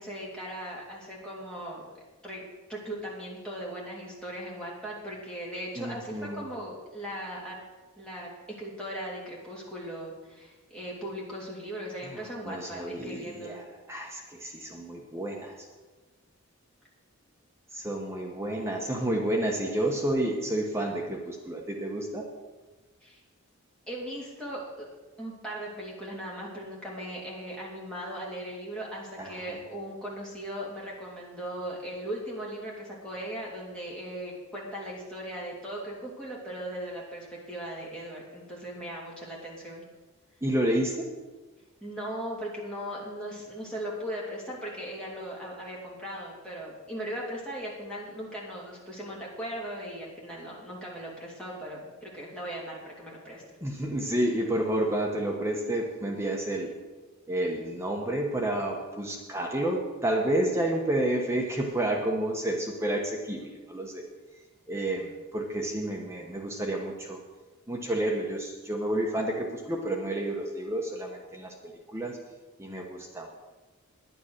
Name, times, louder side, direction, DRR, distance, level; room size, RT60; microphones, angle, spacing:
voice 1, 0.0-1.9 2.2-2.4 2.7-7.6 8.0-8.3 8.6-13.6 23.0-23.2 23.9-24.9 25.2-39.8 41.8-53.4, equal, 5° left, -5 dB, 2.9 m, -38 dB
voice 2, 5.8-6.4 12.0-15.7 17.7-22.3 29.2-29.6 40.4-41.1 53.6-56.8 57.3-64.1 64.7-67.2 67.7-72.2 72.6-73.3, right 1 dB, 10° right, 0 dB, 1.0 m, -30 dB
10.5 x 9.9 x 6.5 m, 1.2 s
head